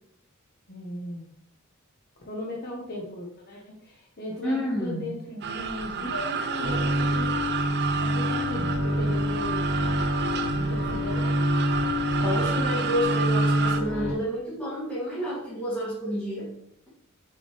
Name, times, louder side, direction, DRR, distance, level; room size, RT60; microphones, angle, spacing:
voice 1, 0.7-1.3 2.3-7.4 8.0-9.7 10.5-11.4, left 1 dB, 50° left, -3 dB, 1.3 m, -37 dB
voice 2, 4.4-5.1 12.2-16.5, equal, 5° left, -10 dB, 2.4 m, -29 dB
sound 1, 5.4-13.8, right 5 dB, 55° right, 0.5 m, -31 dB
Bowed string instrument, 6.6-14.1, equal, 70° left, 1.3 m, -26 dB
6.8 x 5.8 x 3.3 m, 0.71 s
head